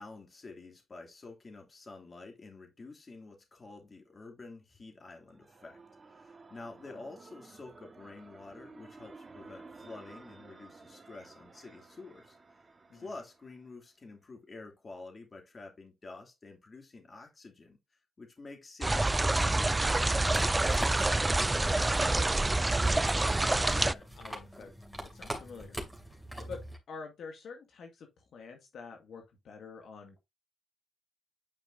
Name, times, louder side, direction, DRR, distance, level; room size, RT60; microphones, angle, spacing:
voice 1, 0.0-5.8 6.1-12.4 12.9-17.8 18.2-20.6, left 3 dB, 40° left, 2.8 m, -49 dB
sound 1, 5.0-13.8, right 3 dB, 35° right, 1.5 m, -54 dB
sound 2, 18.8-23.9, right 2 dB, 20° right, 0.4 m, -27 dB
sound 3, 19.8-26.8, equal, 5° left, 2.7 m, -43 dB
voice 2, 21.5-22.4 23.1-24.7 25.0-30.2, left 5 dB, 80° left, 1.8 m, -48 dB
9.6 x 5.0 x 2.7 m
cardioid pair, 90°, 0 cm